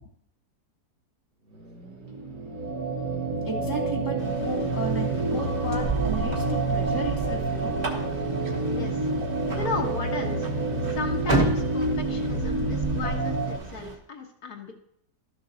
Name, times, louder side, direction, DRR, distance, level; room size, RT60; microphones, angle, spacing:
sound 1, 1.4-12.4, right 3 dB, 80° right, 2.1 m, -43 dB
sound 2, 2.0-13.6, right 2 dB, 65° right, 1.6 m, -28 dB
voice 1, 3.4-7.8, right 2 dB, 15° right, -1 dB, 0.9 m, -34 dB
sound 3, 4.2-14.0, right 3 dB, 35° right, 1.2 m, -33 dB
voice 2, 8.7-9.1 9.5-10.5 10.9-14.7, left 4 dB, 65° left, 2 dB, 1.7 m, -35 dB
12.5 x 6.7 x 3.9 m, 0.70 s
omnidirectional pair, 1.8 m